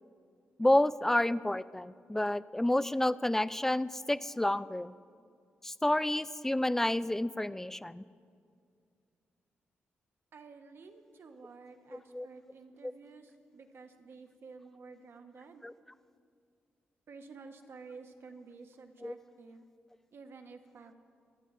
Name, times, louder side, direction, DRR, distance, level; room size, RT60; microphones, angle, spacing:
voice 1, 0.6-4.9 5.6-8.0 11.9-12.3 15.6-15.7 19.0-19.1, left 1 dB, 10° left, 16 dB, 0.3 m, -29 dB
voice 2, 10.3-15.6 17.1-19.6 20.1-20.9, right 4 dB, 65° right, 6 dB, 1.1 m, -51 dB
25.0 x 8.7 x 3.3 m, 2.3 s
cardioid pair, 65°, 4 cm